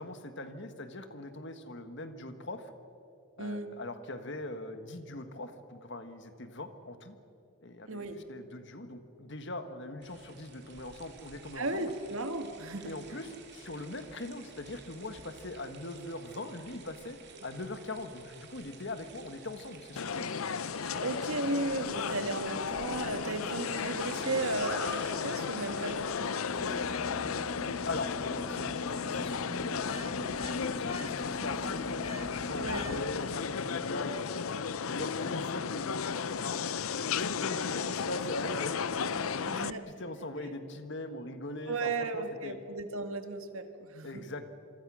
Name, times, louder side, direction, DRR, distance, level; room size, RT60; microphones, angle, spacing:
voice 1, 0.0-2.7 3.4-7.1 7.6-11.9 12.8-20.3 20.8-21.1 27.8-32.0 32.3-34.3 34.6-36.1 36.4-38.8 39.1-42.6 44.0-44.4, left 2 dB, 50° left, 9 dB, 1.6 m, -41 dB
voice 2, 3.4-3.7 7.9-8.2 11.6-12.9 21.0-27.2 32.6-32.8 37.2-37.3 39.4-39.8 41.7-44.2, right 2 dB, 70° right, 7 dB, 1.9 m, -35 dB
sound 1, 10.0-27.7, right 4 dB, 50° right, 3.0 m, -53 dB
sound 2, 20.0-39.7, left 6 dB, 70° left, 0.6 m, -34 dB
sound 3, 26.5-33.0, equal, 25° left, 2.1 m, -42 dB
27.0 x 24.0 x 6.3 m, 2.7 s
head